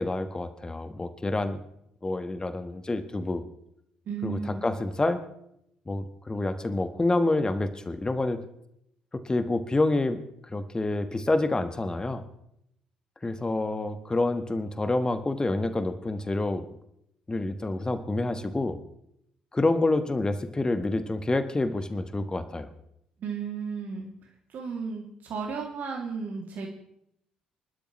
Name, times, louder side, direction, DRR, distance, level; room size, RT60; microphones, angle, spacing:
voice 1, 0.0-1.6 2.0-3.4 4.2-5.2 5.9-8.4 9.2-10.3 10.5-12.2 13.2-16.6 17.3-18.8 19.5-22.7, left 2 dB, 20° left, 10 dB, 1.4 m, -27 dB
voice 2, 4.1-4.6 23.2-24.1 24.5-26.7, right 5 dB, 50° right, 0 dB, 2.6 m, -34 dB
27.5 x 12.5 x 3.2 m, 0.74 s
figure-of-eight pair, 45°, 4 cm